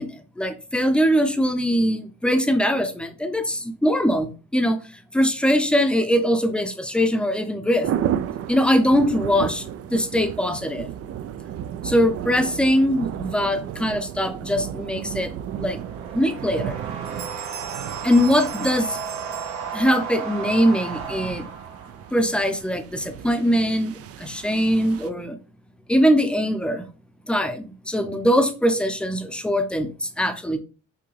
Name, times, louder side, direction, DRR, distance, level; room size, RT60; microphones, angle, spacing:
voice 1, 0.0-4.8 5.1-7.9 8.5-9.7 9.9-10.9 11.8-15.3 15.6-15.8 16.1-16.8 18.0-19.0 19.7-21.5 22.1-25.4 25.9-26.8 27.3-30.6, equal, 5° left, 0.6 m, -22 dB
sound 1, 7.8-25.1, right 10 dB, 50° right, 0.4 m, -34 dB
sound 2, 15.3-22.3, right 6 dB, 70° right, 1.6 m, -34 dB
sound 3, 16.7-16.8 17.0-20.2, right 9 dB, 30° right, 1.1 m, -40 dB
5.9 x 2.2 x 3.2 m
cardioid pair, 90°, 30 cm